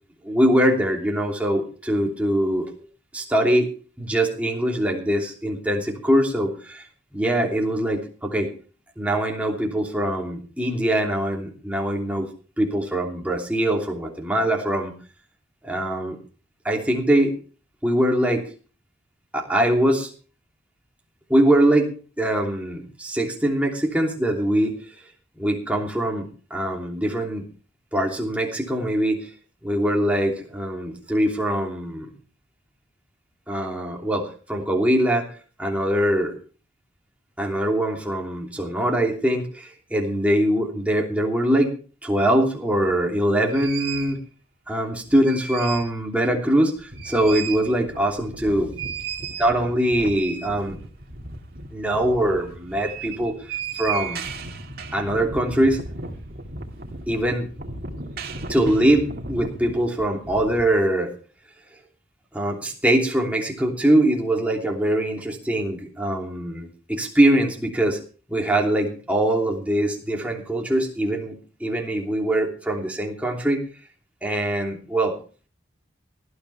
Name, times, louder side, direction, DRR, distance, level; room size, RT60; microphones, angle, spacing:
voice 1, 0.2-2.7 3.1-3.7 4.0-6.8 7.1-8.5 9.0-12.3 12.6-14.9 15.6-16.2 16.6-17.3 17.8-18.4 19.3-20.1 21.3-24.7 25.4-27.4 27.9-29.2 29.6-32.1 33.5-35.3 35.6-36.3 37.4-41.7 42.0-44.2 44.7-48.7 49.4-50.8 51.7-53.3 53.8-54.2 54.9-55.8 57.1-57.5 58.5-61.1 62.3-68.0 68.3-73.6 74.2-75.2, right 1 dB, 5° right, 0 dB, 3.0 m, -22 dB
sound 1, 42.9-43.0 43.5-44.2 45.0-46.0 46.3-46.4 46.8-60.6, right 4 dB, 50° right, 2.3 m, -35 dB
18.5 x 13.0 x 3.4 m, 0.38 s
head